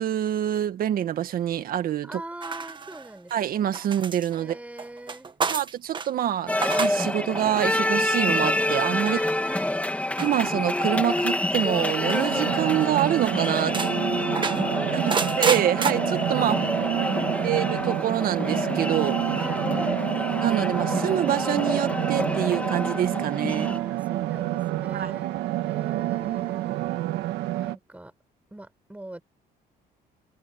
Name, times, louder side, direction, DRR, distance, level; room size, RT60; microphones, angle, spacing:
voice 1, 0.0-2.2 3.3-4.5 5.5-6.5 6.8-9.2 10.2-13.8 14.9-16.6 17.4-19.2 20.4-23.7 24.9-25.1, right 11 dB, 60° right, 2.0 m, -26 dB
voice 2, 2.0-3.8 4.4-5.3 9.0-9.8 14.3-16.0 16.4-17.3 19.3-20.1 23.5-25.3 25.6-26.8 27.6-28.1 28.5-29.2, right 1 dB, 10° right, 7.9 m, -42 dB
sound 1, 2.4-3.3 3.7-6.1 6.5-7.1 7.3-7.7 8.7-9.1 10.2-10.9 12.1-12.4 12.8-12.9 13.2-13.9 14.3-15.9, right 5 dB, 30° right, 1.8 m, -30 dB
sound 2, 6.5-23.8, left 1 dB, 10° left, 3.0 m, -27 dB
sound 3, 12.3-27.7, right 15 dB, 85° right, 1.8 m, -29 dB
cardioid pair, 110°, 17 cm